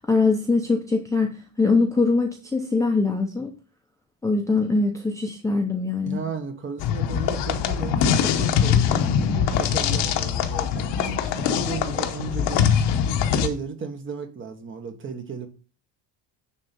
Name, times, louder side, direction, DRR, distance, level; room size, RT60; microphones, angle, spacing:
voice 1, 0.1-3.5 4.2-6.2, left 3 dB, 5° left, 2 dB, 0.6 m, -22 dB
voice 2, 6.0-12.7 13.3-15.5, right 5 dB, 25° right, 6 dB, 1.2 m, -35 dB
sound 1, 6.8-13.5, left 8 dB, 70° left, 1.1 m, -22 dB
10.0 x 3.6 x 5.2 m, 0.36 s
cardioid pair, 175°, 44 cm